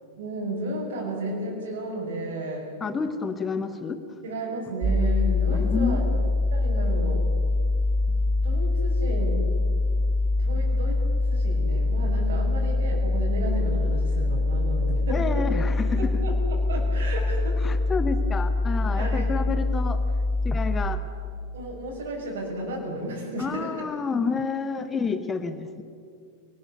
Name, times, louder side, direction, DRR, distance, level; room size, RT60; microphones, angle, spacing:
voice 1, 0.2-2.7 4.2-6.1 6.5-7.3 8.0-9.5 10.1-15.6 16.0-17.8 19.0-19.4 21.5-23.9, right 1 dB, 55° right, -3 dB, 6.0 m, -33 dB
voice 2, 2.8-4.0 5.6-6.2 15.1-16.0 17.6-20.0 20.4-21.0 23.4-25.8, left 5 dB, 20° left, 10 dB, 1.4 m, -29 dB
sound 1, 4.8-20.9, left 2 dB, 30° right, 1.5 m, -24 dB
28.5 x 20.0 x 7.0 m, 2.2 s
figure-of-eight pair, 90°, 0 cm